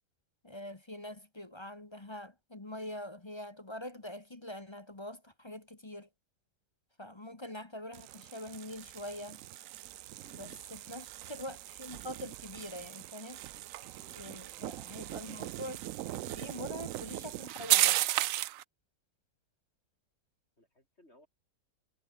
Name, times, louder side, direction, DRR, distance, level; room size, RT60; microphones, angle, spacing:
voice 1, 0.4-6.1 7.0-9.4 10.3-13.4 14.1-18.0, left 1 dB, 20° left, 1.0 m, -44 dB
sound 1, 7.9-18.6, right 14 dB, 85° right, 0.7 m, -36 dB
voice 2, 10.2-10.5 14.0-14.7 20.6-21.3, left 1 dB, 35° left, 8.0 m, -62 dB
omnidirectional pair, 2.0 m